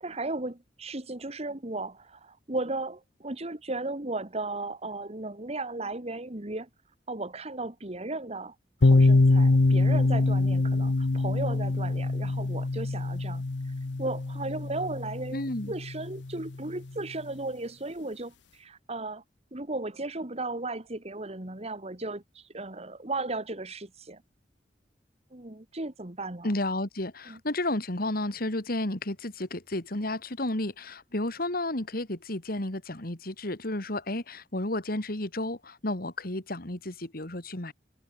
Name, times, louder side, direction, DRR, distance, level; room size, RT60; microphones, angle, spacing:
voice 1, 0.0-6.7 7.1-8.6 8.8-13.4 14.0-19.2 19.5-24.2 25.3-26.5 27.3-27.4, right 2 dB, 35° right, 1.9 m, -35 dB
sound 1, 8.8-16.5, left 2 dB, 85° left, 0.8 m, -24 dB
voice 2, 15.3-15.7 26.4-37.7, left 1 dB, 55° left, 2.8 m, -32 dB
head